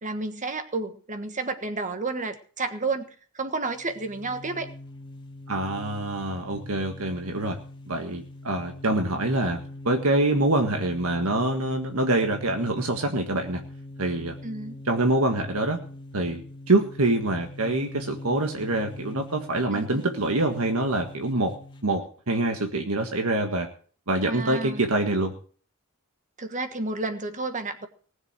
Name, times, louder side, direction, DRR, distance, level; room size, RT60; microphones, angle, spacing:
voice 1, 0.0-4.7 14.4-14.8 19.7-20.0 24.2-24.8 26.4-27.9, right 3 dB, 35° right, 8 dB, 1.5 m, -31 dB
sound 1, 3.6-21.9, left 1 dB, 25° left, 1.7 m, -42 dB
voice 2, 5.5-7.6 7.9-9.6 9.9-13.6 14.0-14.3 14.9-15.8 16.1-21.5 21.8-23.7 24.1-25.3, right 2 dB, 85° right, 4 dB, 1.7 m, -25 dB
19.0 x 7.4 x 6.2 m, 0.43 s
head